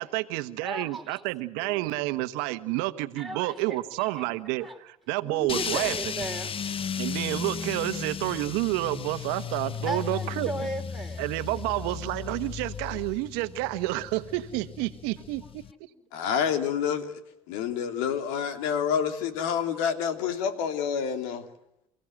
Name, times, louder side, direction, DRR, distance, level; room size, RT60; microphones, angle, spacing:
voice 1, 0.0-5.9 7.0-10.5 11.2-15.9, right 18 dB, 70° right, 1.3 m, -30 dB
voice 2, 0.6-1.2 1.6-2.0 3.1-4.2 4.6-4.8 5.2-6.5 9.8-11.2, right 1 dB, ahead, 4.5 m, -37 dB
sound 1, 5.5-15.7, left 7 dB, 30° left, 0.8 m, -35 dB
voice 3, 16.1-17.2 17.5-21.4, left 7 dB, 75° left, 3.0 m, -28 dB
29.5 x 16.5 x 7.8 m
hypercardioid pair, 75°, 18 cm